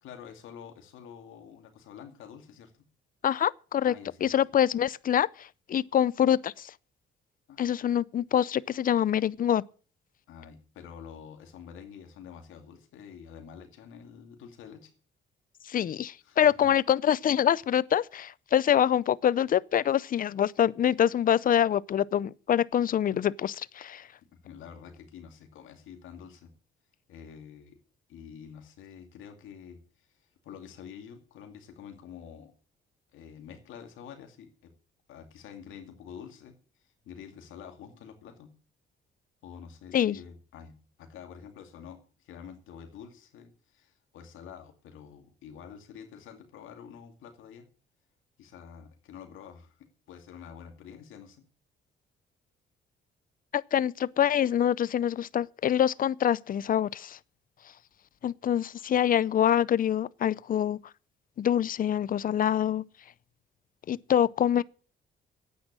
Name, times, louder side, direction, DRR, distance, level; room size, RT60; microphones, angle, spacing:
voice 1, 0.0-2.8 3.8-4.4 7.5-7.8 10.3-14.9 16.2-16.7 24.3-26.5 27.1-27.8 28.1-32.5 33.1-34.7 35.1-38.5 39.4-47.7 48.4-51.4, left 7 dB, 85° left, 2.4 m, -48 dB
voice 2, 3.2-3.9 4.2-6.7 7.6-9.6 15.7-24.0 39.9-40.2 53.5-57.2 58.2-60.8 61.4-62.8 63.9-64.6, left 10 dB, 45° left, 0.5 m, -25 dB
10.0 x 8.8 x 8.8 m
cardioid pair, 90°, 20 cm